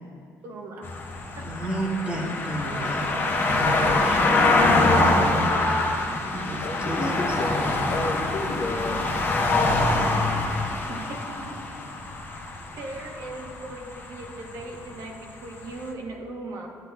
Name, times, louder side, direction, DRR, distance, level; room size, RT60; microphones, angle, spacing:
voice 1, 0.4-0.9 1.4-1.7 2.6-2.9 7.0-7.2 10.9-11.6 12.1-16.7, right 2 dB, 60° right, 0 dB, 1.2 m, -39 dB
sound 1, 0.8-15.4 15.8-15.9, left 2 dB, 35° left, 0.8 m, -24 dB
voice 2, 1.4-3.1 3.5-5.2 6.3-7.8, right 1 dB, 20° right, -3 dB, 1.4 m, -33 dB
voice 3, 6.6-9.0, left 2 dB, 60° left, 0 dB, 1.0 m, -31 dB
10.5 x 7.9 x 2.3 m, 2.4 s
cardioid pair, 125°, 6 cm